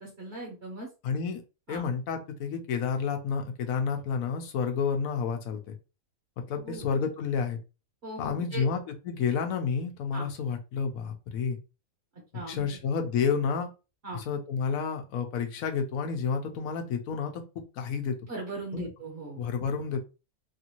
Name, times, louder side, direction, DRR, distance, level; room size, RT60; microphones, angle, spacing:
voice 1, 0.0-0.9 1.7-1.8 6.5-6.9 8.0-8.6 10.1-10.3 12.3-12.8 14.0-14.2 18.3-19.5, right 2 dB, 50° right, -2 dB, 1.2 m, -39 dB
voice 2, 1.0-1.4 1.7-5.6 6.4-7.6 8.2-11.6 12.5-13.7 14.1-17.3 17.8-18.2 18.7-18.9 19.4-20.0, left 6 dB, 80° left, 5 dB, 1.0 m, -30 dB
3.0 x 2.6 x 2.8 m, 0.30 s
omnidirectional pair, 1.5 m